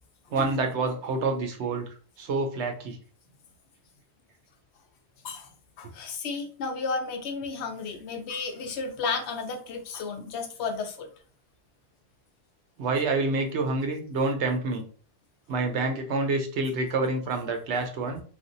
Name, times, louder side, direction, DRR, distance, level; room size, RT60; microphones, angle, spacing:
voice 1, 0.3-1.9 2.2-3.0 12.8-14.8 15.5-18.2, right 3 dB, 85° right, 5 dB, 1.0 m, -27 dB
voice 2, 5.8-11.1, left 4 dB, 75° left, 5 dB, 0.9 m, -33 dB
3.3 x 2.4 x 2.6 m, 0.40 s
omnidirectional pair, 1.1 m